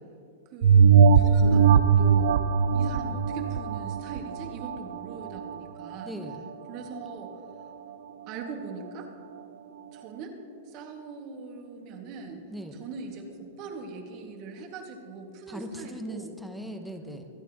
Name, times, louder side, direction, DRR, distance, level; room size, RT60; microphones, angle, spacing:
voice 1, 0.5-2.4 2.7-6.1 6.7-7.3 8.3-9.1 9.9-10.4 10.7-12.4 12.8-16.3, right 4 dB, 45° right, 2 dB, 1.9 m, -41 dB
sound 1, 0.6-5.5 6.0-6.1, right 6 dB, 70° right, 0.5 m, -20 dB
voice 2, 6.0-6.5 12.5-12.8 15.5-17.3, equal, ahead, 4 dB, 1.1 m, -39 dB
25.0 x 9.0 x 3.0 m, 2.6 s
hypercardioid pair, 125°, 0 cm